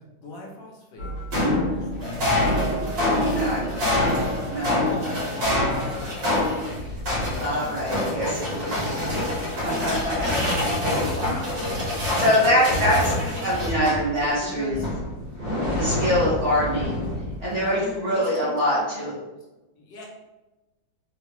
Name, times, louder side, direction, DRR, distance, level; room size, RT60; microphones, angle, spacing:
voice 1, 0.2-1.1 1.6-3.0 3.5-4.1 4.5-6.7 7.4-7.8 8.7-9.1 11.0-12.3 12.7-14.0 14.4-14.9 17.6-19.0 19.8-20.1, left 1 dB, 75° left, -1 dB, 1.3 m, -39 dB
sound 1, 1.0-14.4 14.7-17.4, left 1 dB, 70° right, 1.8 m, -26 dB
voice 2, 3.0-3.8 4.5-4.7 7.4-8.9 9.6-10.3 12.2-13.1 13.4-14.8 15.7-17.0 17.4-19.2, equal, 50° right, -7 dB, 1.0 m, -24 dB
3.8 x 2.0 x 2.9 m, 1.1 s
omnidirectional pair, 2.1 m